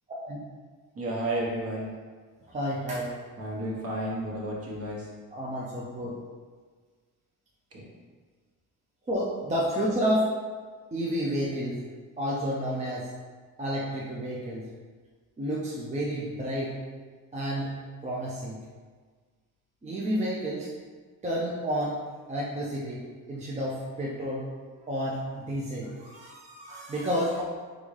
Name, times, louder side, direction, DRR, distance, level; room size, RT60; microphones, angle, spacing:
voice 1, 0.9-1.9 3.4-5.1 7.7-7.9, right 1 dB, 45° right, -3 dB, 1.1 m, -32 dB
voice 2, 2.5-3.1 5.3-6.1 9.1-10.3 10.9-11.8 12.2-13.1 13.6-14.6 15.4-16.8 17.3-17.8 18.0-18.6 19.8-20.7 21.2-22.0 22.3-24.5 24.9-27.4, equal, 20° right, -5 dB, 0.6 m, -30 dB
3.9 x 3.6 x 3.2 m, 1.5 s
cardioid pair, 125°, 34 cm